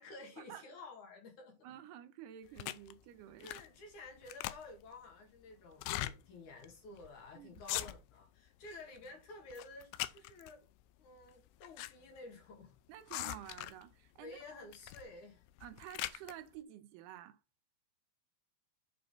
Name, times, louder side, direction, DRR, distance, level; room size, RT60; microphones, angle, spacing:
voice 1, 0.0-1.7 2.5-2.6 3.4-10.7 11.0-12.7 14.2-15.4, left 2 dB, 55° left, 3.0 m, -52 dB
voice 2, 1.6-3.5 7.3-7.6 12.9-14.4 15.6-17.4, right 11 dB, 80° right, 2.8 m, -51 dB
sound 1, 2.6-2.9 3.4-3.8 4.1-4.9 5.7-6.1 6.6-6.7 7.0-7.2 7.6-8.2 8.6-9.1 9.5-10.5 11.3-11.9 12.2-12.3 13.1-13.9 14.7-15.1 15.5-16.3, left 16 dB, 85° left, 2.7 m, -41 dB
7.9 x 4.6 x 5.3 m
omnidirectional pair, 4.8 m